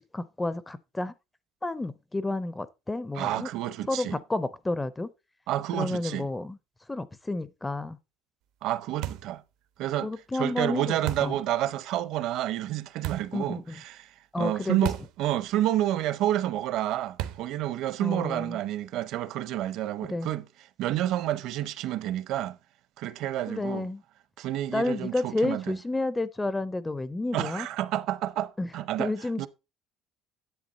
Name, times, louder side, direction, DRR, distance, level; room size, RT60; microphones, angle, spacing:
voice 1, 0.1-1.1 1.6-3.5 3.9-5.1 5.7-6.6 6.9-8.0 10.0-11.3 13.3-13.8 14.3-14.8 18.0-18.6 20.1-20.3 23.5-24.0 24.7-27.7 28.6-28.7 29.0-29.5, left 2 dB, 10° left, 0.4 m, -30 dB
voice 2, 3.1-4.2 5.5-6.3 8.6-9.4 9.8-20.4 20.8-22.6 23.0-23.9 24.4-25.8 27.3-29.1 29.4-29.5, right 13 dB, 55° right, 0.7 m, -29 dB
sound 1, 9.0-9.4 11.1-11.4 13.0-13.4 14.8-15.2 15.5-15.6 17.2-17.6, right 12 dB, 80° right, 0.9 m, -35 dB
10.5 x 7.9 x 4.0 m
cardioid pair, 175°, 0 cm